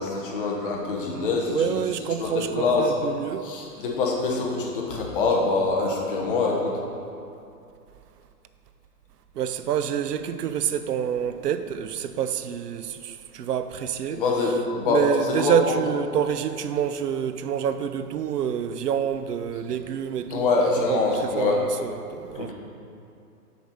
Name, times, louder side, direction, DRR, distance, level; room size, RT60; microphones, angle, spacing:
voice 1, 0.0-1.8 2.2-2.9 3.4-6.8 14.1-15.5 20.3-21.6 22.3-22.5, left 3 dB, 35° left, 1.0 m, -25 dB
voice 2, 1.1-3.4 9.4-14.2 14.8-21.0 21.4-22.5, right 9 dB, 75° right, 0.6 m, -27 dB
6.9 x 4.0 x 6.3 m
hypercardioid pair, 160°, 48 cm